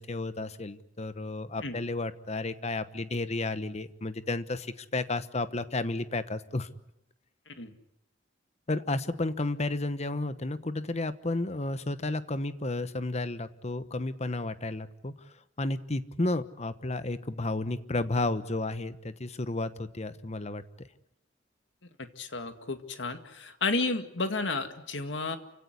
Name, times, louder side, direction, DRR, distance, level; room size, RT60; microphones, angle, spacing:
voice 1, 0.0-6.7 8.7-20.9, left 2 dB, 35° left, 13 dB, 1.1 m, -32 dB
voice 2, 22.2-25.4, left 3 dB, 80° left, 8 dB, 2.1 m, -32 dB
28.0 x 17.0 x 9.6 m, 0.85 s
head